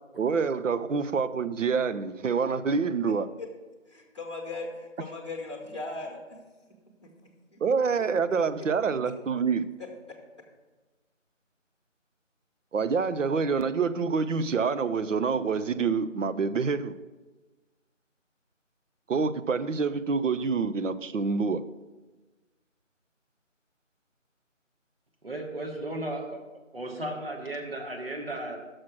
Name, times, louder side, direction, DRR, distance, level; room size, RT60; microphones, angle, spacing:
voice 1, 0.2-3.3 7.6-9.7 12.7-17.0 19.1-21.6, right 5 dB, 75° right, 13 dB, 0.5 m, -27 dB
voice 2, 3.9-6.4 7.0-7.1 7.5-7.6 8.3-8.4 9.0-9.1 9.8-10.2, left 3 dB, 25° left, 1 dB, 1.1 m, -38 dB
voice 3, 25.2-26.4 26.7-28.6, right 1 dB, 50° right, 2 dB, 1.3 m, -35 dB
6.4 x 5.9 x 6.0 m, 1.2 s
figure-of-eight pair, 170°, 39 cm